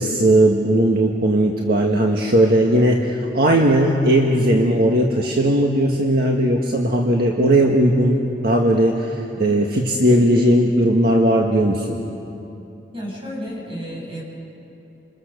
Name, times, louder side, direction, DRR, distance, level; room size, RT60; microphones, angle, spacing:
voice 1, 0.0-12.0, right 1 dB, 60° right, 0 dB, 1.8 m, -17 dB
voice 2, 12.9-14.2, equal, 30° right, -2 dB, 7.4 m, -31 dB
29.0 x 27.5 x 6.8 m, 2.8 s
head